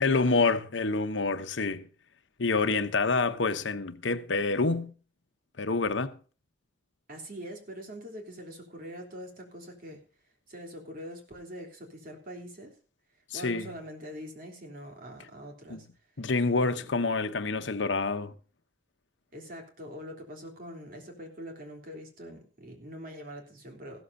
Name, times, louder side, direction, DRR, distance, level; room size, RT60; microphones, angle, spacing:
voice 1, 0.0-1.9 2.4-4.9 5.6-6.2 13.3-13.7 15.7-15.8 16.2-18.3, left 3 dB, 80° left, 0.9 m, -27 dB
voice 2, 7.1-10.0 10.5-12.8 13.3-15.9 16.7-16.9 19.3-24.0, equal, 50° right, 3.4 m, -43 dB
15.5 x 13.0 x 2.7 m
head